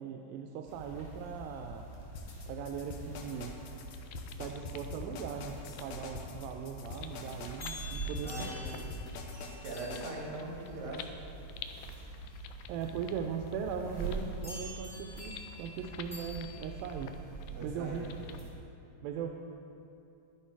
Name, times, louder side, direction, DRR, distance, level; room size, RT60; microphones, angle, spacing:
voice 1, 0.0-1.9 2.5-3.5 4.4-8.5 12.7-17.2 17.6-18.2 19.0-19.3, right 7 dB, 90° right, 3 dB, 2.4 m, -39 dB
sound 1, 0.7-18.5, right 2 dB, 20° left, 1.0 m, -44 dB
sound 2, 2.2-10.1, left 5 dB, 70° left, 1.8 m, -45 dB
sound 3, 3.7-18.4, left 9 dB, 90° left, 1.7 m, -52 dB
voice 2, 8.2-8.9 9.6-11.1 17.5-18.1, right 2 dB, 70° right, -2 dB, 3.5 m, -41 dB
11.0 x 10.0 x 4.6 m, 2.7 s
omnidirectional pair, 4.0 m